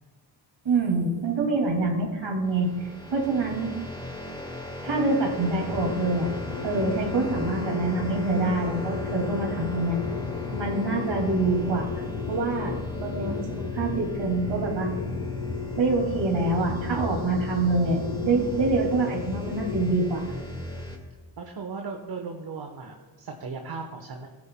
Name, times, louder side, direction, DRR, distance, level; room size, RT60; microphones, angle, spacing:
voice 1, 0.6-2.7 3.1-3.7 4.8-6.3 6.6-10.0 10.5-12.0 12.3-14.9 15.8-20.2, right 3 dB, 70° right, 1 dB, 2.5 m, -26 dB
sound 1, 2.5-21.0, left 1 dB, 10° left, 1.8 m, -37 dB
sound 2, 5.7-19.9, left 6 dB, 70° left, 0.9 m, -35 dB
voice 2, 21.4-24.3, right 4 dB, 50° right, 3 dB, 1.2 m, -37 dB
15.0 x 9.7 x 2.2 m, 1.3 s
supercardioid pair, 50°, 46 cm